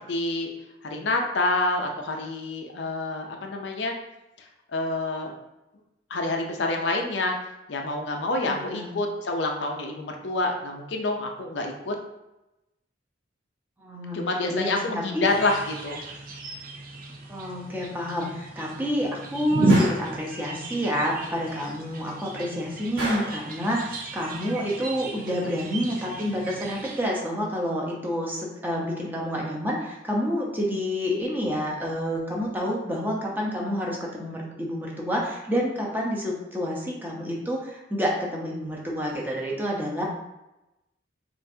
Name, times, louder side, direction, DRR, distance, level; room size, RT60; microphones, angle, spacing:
voice 1, 0.1-0.5 0.8-3.9 4.4-5.3 6.1-7.4 7.7-12.0 14.1-16.2, left 2 dB, 70° left, 2 dB, 0.5 m, -27 dB
voice 2, 8.5-8.9 13.8-14.2 14.5-15.2 17.3-40.0, equal, 10° right, -3 dB, 0.7 m, -29 dB
sound 1, 15.2-27.0, right 1 dB, 45° right, 0.5 m, -32 dB
Gunshot gunfire, 19.7-20.1 23.0-23.4, right 1 dB, 65° right, 1.5 m, -30 dB
5.5 x 2.6 x 2.7 m, 0.93 s
head